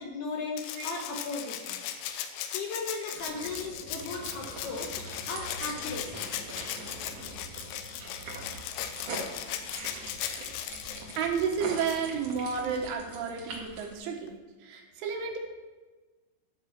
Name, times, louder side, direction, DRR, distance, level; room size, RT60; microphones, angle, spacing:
voice 1, 0.0-1.8 2.5-6.3, left 3 dB, 70° left, 1 dB, 2.6 m, -37 dB
Rattle (instrument), 0.6-12.9 14.3-14.4, left 10 dB, 85° left, 3.2 m, -38 dB
sound 1, 3.1-14.0, right 2 dB, 50° right, 2.5 m, -43 dB
voice 2, 11.2-14.3 14.6-15.4, right 6 dB, 80° right, 1 dB, 3.7 m, -31 dB
12.5 x 6.2 x 7.4 m, 1.3 s
omnidirectional pair, 5.7 m